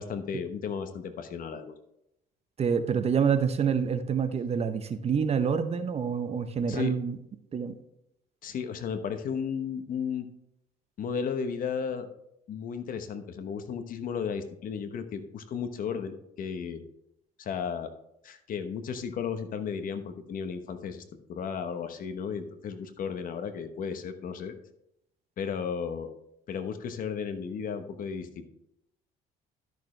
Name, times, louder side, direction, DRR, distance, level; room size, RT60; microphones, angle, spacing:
voice 1, 0.0-1.7 6.7-6.9 8.4-10.3 11.0-12.1 12.5-16.8 17.4-17.9 18.2-21.0 21.3-24.5 25.4-26.1 26.5-28.5, left 6 dB, 55° left, 9 dB, 1.0 m, -34 dB
voice 2, 2.6-7.2 7.5-7.7, right 6 dB, 40° right, 10 dB, 0.8 m, -27 dB
12.0 x 6.5 x 3.3 m, 0.81 s
cardioid pair, 110°, 17 cm